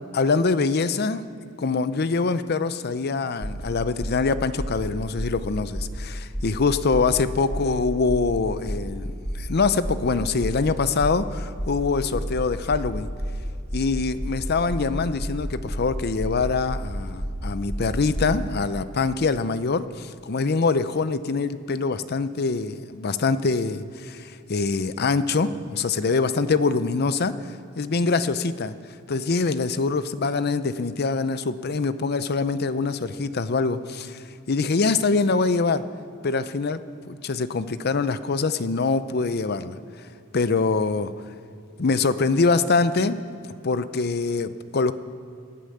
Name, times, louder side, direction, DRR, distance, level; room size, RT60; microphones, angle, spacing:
voice 1, 0.1-1.2 1.6-9.1 9.3-13.1 13.7-27.3 27.8-28.7 29.1-35.8 36.2-36.8 37.1-39.8 40.3-41.1 41.8-43.2 43.6-44.9, left 4 dB, 50° left, 13 dB, 0.6 m, -24 dB
sound 1, 3.4-3.6 4.0-4.2 4.6-4.8 5.1-5.4 5.7-6.0 6.3-6.6 6.9-7.1 7.5-7.7 8.1-8.3 8.6-8.9 9.2-9.5 9.8-10.1 10.4-10.6 11.0-11.2 11.6-11.8 12.1-12.4 12.7-12.9 13.2-13.4 13.7-13.9 14.2-14.4 14.7-14.9 15.2-15.4 15.7-15.9 16.2-16.4 16.7-16.9 17.2-17.4 17.7-18.4, equal, 10° left, 4.2 m, -30 dB
18.0 x 11.5 x 6.7 m, 2.5 s
head